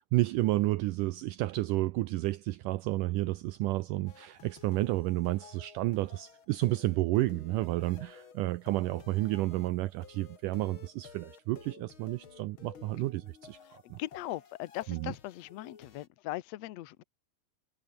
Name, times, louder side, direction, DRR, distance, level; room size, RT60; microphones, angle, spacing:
voice 1, 0.1-14.0 14.9-15.1, right 18 dB, 80° right, 1.9 m, -31 dB
sound 1, 4.1-16.1, left 6 dB, 40° left, 2.7 m, -54 dB
voice 2, 13.8-17.0, left 16 dB, 85° left, 1.5 m, -39 dB
omnidirectional pair, 4.3 m